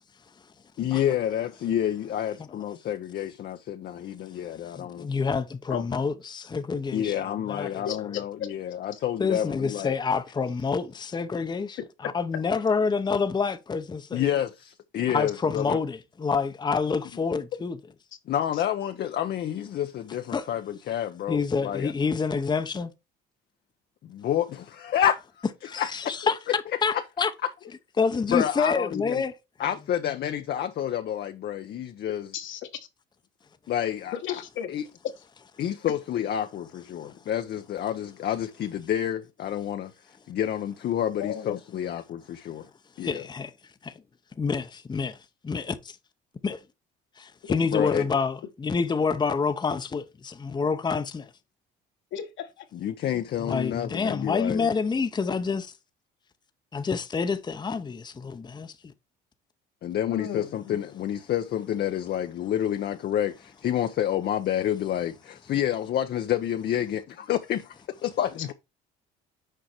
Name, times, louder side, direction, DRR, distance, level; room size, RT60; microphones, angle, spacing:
voice 1, 0.8-5.1 6.9-10.0 14.1-15.8 18.3-21.9 24.0-26.1 26.5-27.0 27.4-27.5 28.3-29.2 29.6-32.3 33.7-34.2 34.7-34.8 35.6-39.9 40.3-42.7 43.0-43.3 47.7-48.1 52.7-54.7 59.8-68.5, left 10 dB, 50° left, 0.7 m, -29 dB
voice 2, 4.8-7.1 7.5-7.8 9.2-14.2 15.1-17.8 20.3-20.4 21.3-22.9 25.6-27.3 28.0-29.3 43.0-43.5 43.8-43.9 44.4-45.2 45.4-45.9 46.4-46.6 47.2-51.3 53.4-55.7 56.7-58.7, left 5 dB, 20° left, 0.8 m, -27 dB
voice 3, 5.7-6.0 7.9-8.2 8.5-8.6 11.8-12.1 32.3-32.6 34.1-34.7 41.2-41.5 47.4-47.9 52.1-52.7 60.1-60.7, left 9 dB, 70° left, 1.4 m, -34 dB
6.7 x 4.6 x 4.4 m
supercardioid pair, 90°, 21 cm